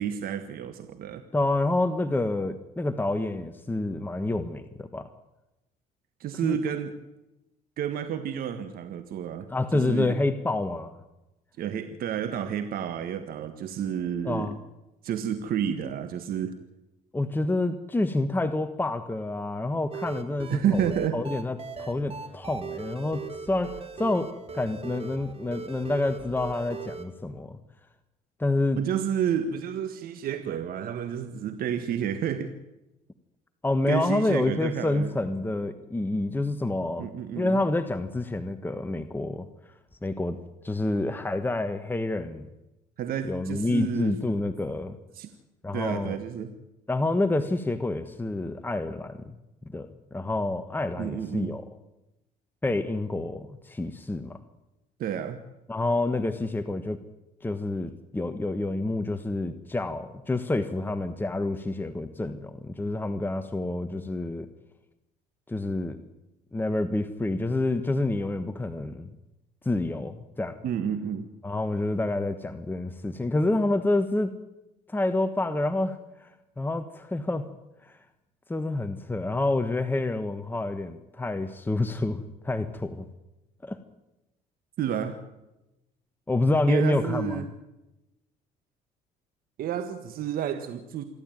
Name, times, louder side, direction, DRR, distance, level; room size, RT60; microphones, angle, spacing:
voice 1, 0.0-1.2 6.2-6.9 7.8-9.5 9.7-10.2 11.6-14.5 15.0-16.5 20.5-21.2 28.7-32.5 33.9-35.1 37.0-37.6 43.0-44.1 45.1-45.3 45.7-46.5 51.0-51.5 55.0-55.4 70.6-71.3 84.8-85.2 86.7-87.5 89.6-91.0, right 9 dB, 60° right, 9 dB, 1.6 m, -30 dB
voice 2, 1.3-5.1 6.4-6.6 9.5-11.0 14.2-14.6 17.1-27.6 28.4-28.8 33.6-37.1 37.3-39.5 40.0-40.4 40.6-42.5 43.2-45.0 45.6-46.2 46.9-49.4 49.7-51.6 52.6-54.4 55.7-57.0 57.4-64.5 65.5-66.0 66.5-69.1 69.6-70.6 71.4-74.3 74.9-76.3 76.6-77.5 77.8-77.9 78.5-83.0 83.6-83.8 86.3-87.4, left 2 dB, 10° left, 9 dB, 1.4 m, -28 dB
sound 1, 19.9-27.1, right 5 dB, 35° right, 2.8 m, -39 dB
27.5 x 12.0 x 9.1 m, 0.95 s
supercardioid pair, 85°, 17 cm